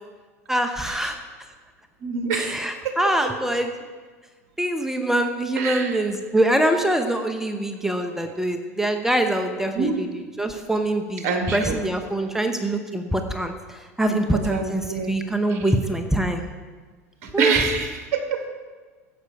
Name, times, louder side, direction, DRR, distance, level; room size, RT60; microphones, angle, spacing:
voice 1, 0.5-1.2 2.3-3.7 4.6-16.4 17.3-17.5, right 1 dB, 5° right, 6 dB, 1.0 m, -24 dB
voice 2, 2.0-3.0 5.6-5.9 9.8-9.9 11.2-11.8 14.1-14.2 14.5-15.2 15.5-15.6 17.2-18.5, right 5 dB, 60° right, 4 dB, 2.0 m, -26 dB
13.5 x 8.3 x 4.7 m, 1.4 s
hypercardioid pair, 90°, 9 cm